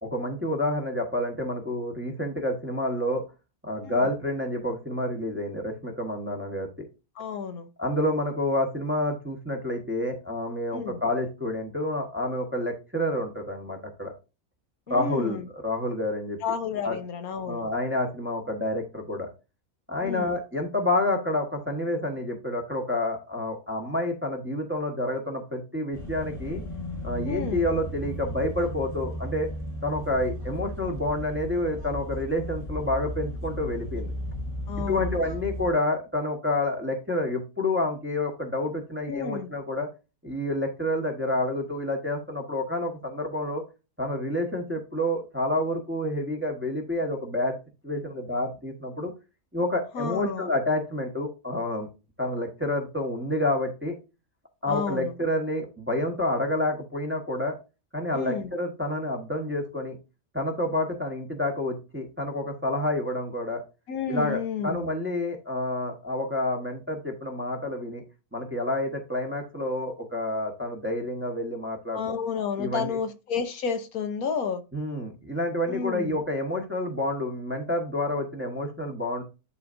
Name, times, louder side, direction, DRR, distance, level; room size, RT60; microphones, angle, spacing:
voice 1, 0.0-3.2 3.6-6.7 7.8-14.1 14.9-16.4 16.8-17.0 17.5-19.3 19.9-26.6 27.0-29.5 29.8-34.1 34.9-39.9 40.2-43.6 44.0-47.5 47.8-49.1 49.5-51.9 52.2-53.9 54.6-57.6 57.9-60.0 60.3-63.6 64.1-68.0 68.3-72.1 72.6-73.0 74.7-79.2, left 1 dB, 10° right, 1.2 m, -29 dB
voice 2, 7.2-7.7 10.7-11.0 14.9-15.4 16.4-17.7 20.0-20.4 27.3-27.6 34.7-35.2 39.1-39.5 49.9-50.5 54.7-55.1 58.1-58.5 63.9-64.8 71.9-74.6 75.7-76.2, left 6 dB, 70° left, 1.3 m, -31 dB
sound 1, 25.9-35.7, equal, 10° left, 1.5 m, -35 dB
11.0 x 4.2 x 2.6 m
omnidirectional pair, 1.6 m